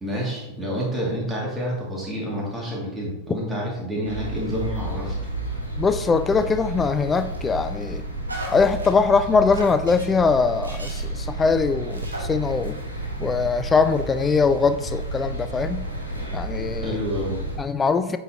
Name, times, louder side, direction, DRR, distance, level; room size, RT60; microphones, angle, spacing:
voice 1, 0.0-5.1 16.8-17.4, equal, 10° right, -4 dB, 2.2 m, -28 dB
sound 1, 4.0-17.6, right 1 dB, 90° left, 1.4 m, -31 dB
voice 2, 5.8-8.0 8.5-12.8 13.2-15.9 16.3-17.0 17.6-18.2, left 4 dB, 15° left, 12 dB, 0.4 m, -22 dB
sound 2, 7.1-7.6 8.3-8.9 9.5-10.1 10.6-11.2 11.7-12.2 12.6-12.7, right 1 dB, 80° right, 1.3 m, -37 dB
7.8 x 4.6 x 2.8 m, 0.93 s
figure-of-eight pair, 90°, 0 cm